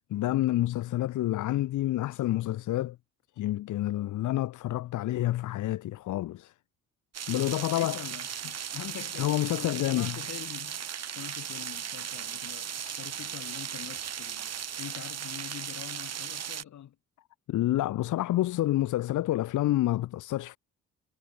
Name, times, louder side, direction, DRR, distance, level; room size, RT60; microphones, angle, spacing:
voice 1, 0.0-3.0 3.4-6.5 7.3-8.0 9.2-10.2 17.5-20.6, left 15 dB, 85° left, 1.9 m, -28 dB
sound 1, 7.1-16.6, right 8 dB, 55° right, 7.3 m, -37 dB
voice 2, 7.3-8.3 8.7-17.0, left 10 dB, 70° left, 7.4 m, -44 dB
cardioid pair, 90°, 30 cm